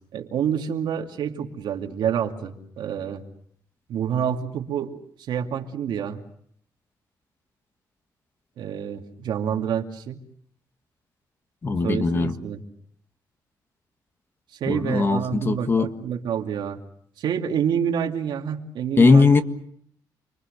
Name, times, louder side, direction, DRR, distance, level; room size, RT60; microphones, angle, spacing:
voice 1, 0.1-3.2 3.9-5.0 5.3-6.2 8.6-10.2 11.8-12.6 14.6-16.8 17.2-19.3, right 8 dB, 80° right, 3 dB, 2.6 m, -28 dB
voice 2, 11.6-12.3 14.7-15.9 19.0-19.4, left 4 dB, 30° left, 8 dB, 1.7 m, -19 dB
29.0 x 23.0 x 6.8 m, 0.65 s
cardioid pair, 135°, 8 cm